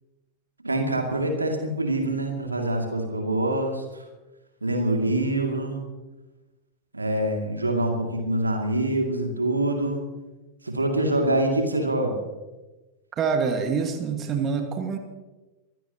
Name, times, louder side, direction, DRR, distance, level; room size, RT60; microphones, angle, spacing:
voice 1, 0.6-4.0 4.6-5.9 6.9-10.0 10.6-12.2, right 1 dB, 80° right, 3 dB, 2.4 m, -25 dB
voice 2, 13.1-15.0, right 5 dB, 30° right, 5 dB, 1.7 m, -26 dB
24.0 x 15.5 x 3.0 m, 1.1 s
figure-of-eight pair, 90°, 0 cm